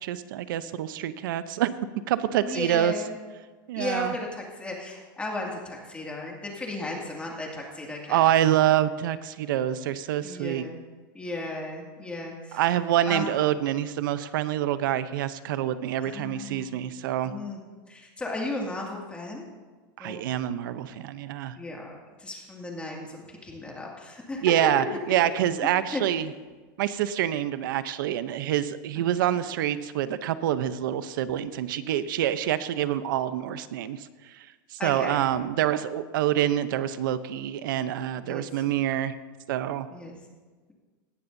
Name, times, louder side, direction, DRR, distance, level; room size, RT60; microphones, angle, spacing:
voice 1, 0.0-1.8 2.1-2.9 3.7-4.1 8.1-10.7 12.5-17.3 20.0-21.6 24.4-26.3 26.8-34.0 34.7-39.2 39.5-39.9, right 11 dB, 75° right, 13 dB, 0.7 m, -26 dB
voice 2, 2.4-3.2 3.8-8.2 10.2-10.7 11.1-12.6 13.1-13.3 16.0-16.8 17.2-17.6 17.9-19.4 20.0-20.2 21.6-24.5 25.9-26.0 29.2-29.4 34.8-35.2 38.2-38.5 39.9-40.1, left 2 dB, 10° left, -1 dB, 2.2 m, -35 dB
18.0 x 13.0 x 2.7 m, 1.4 s
supercardioid pair, 150°, 11 cm